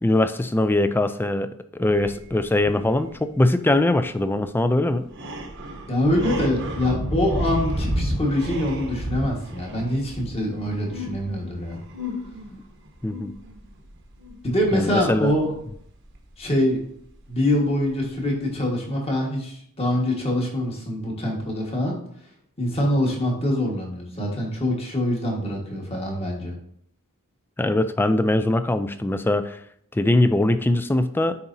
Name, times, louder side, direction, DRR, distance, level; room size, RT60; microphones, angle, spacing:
voice 1, 0.0-5.1 13.0-13.3 14.7-15.3 27.6-29.6 29.9-31.4, left 1 dB, 10° left, 10 dB, 0.3 m, -22 dB
sound 1, 1.9-3.2 3.8-3.9 4.1-4.2 4.9-16.4 16.7-16.9, equal, 60° right, 0.9 m, -31 dB
voice 2, 5.9-11.8 14.4-15.5 16.4-16.8 17.3-22.0 22.6-26.5, left 1 dB, 30° left, 0 dB, 1.5 m, -24 dB
9.7 x 4.1 x 2.7 m, 0.66 s
head